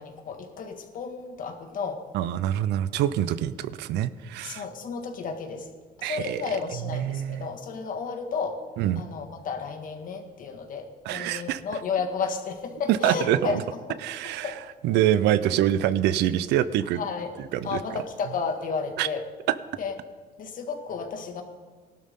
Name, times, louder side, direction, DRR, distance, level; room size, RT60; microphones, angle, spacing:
voice 1, 0.0-2.1 4.4-5.7 6.0-8.7 9.0-13.6 13.9-14.6 16.9-17.4 17.6-19.3 19.8-20.0 20.4-21.4, left 5 dB, 55° left, 5 dB, 1.9 m, -32 dB
voice 2, 2.1-4.6 6.0-6.4 6.9-7.5 8.8-9.0 11.1-11.6 12.9-13.6 14.0-14.4 14.8-17.0 17.5-17.6 19.0-19.1, right 12 dB, 85° right, 15 dB, 0.6 m, -25 dB
18.5 x 12.0 x 3.7 m, 1.5 s
cardioid pair, 110°, 17 cm